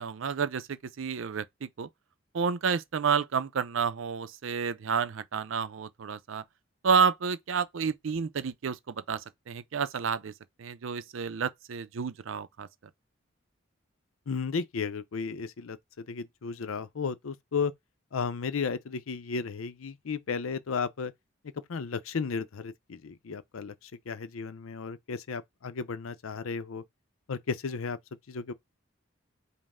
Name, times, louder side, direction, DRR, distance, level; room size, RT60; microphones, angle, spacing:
voice 1, 0.0-1.9 2.3-6.4 6.8-10.3 10.6-12.7, right 6 dB, 75° right, 0.5 m, -30 dB
voice 2, 14.3-17.7 18.1-21.1 21.7-26.8 27.3-28.0 28.3-28.5, left 5 dB, 85° left, 0.5 m, -34 dB
5.3 x 2.1 x 3.5 m
head